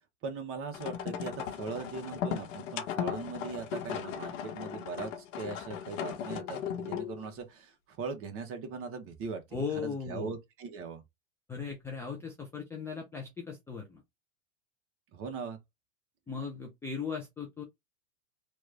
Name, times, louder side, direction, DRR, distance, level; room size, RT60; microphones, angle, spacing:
voice 1, 0.2-11.0 15.1-15.6, right 5 dB, 35° right, 1.1 m, -40 dB
sound 1, 0.7-7.2, left 9 dB, 65° left, 1.1 m, -37 dB
voice 2, 9.5-10.3 11.5-14.0 16.3-17.6, left 5 dB, 5° left, 0.3 m, -37 dB
3.1 x 2.4 x 3.3 m
supercardioid pair, 125°, 40 cm